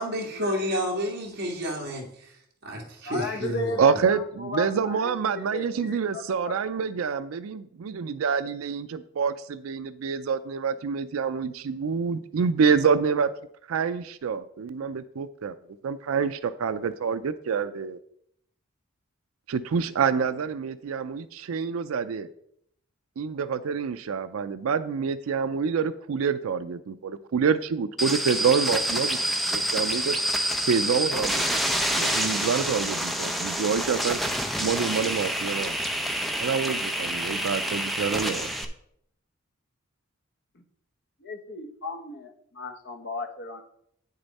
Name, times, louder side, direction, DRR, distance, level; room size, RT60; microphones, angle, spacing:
voice 1, 0.0-3.8, equal, 50° right, -1 dB, 2.1 m, -30 dB
voice 2, 3.0-6.5 41.2-43.6, left 2 dB, 55° left, 6 dB, 1.1 m, -35 dB
voice 3, 3.8-13.3 13.7-15.6 15.8-18.0 19.5-22.3 23.2-29.2 29.5-30.2 30.7-34.2 34.6-35.8 36.4-38.5, right 6 dB, 80° right, 12 dB, 0.4 m, -27 dB
sound 1, 28.0-38.6, equal, ahead, 0.6 m, -27 dB
8.9 x 6.6 x 4.1 m, 0.71 s
head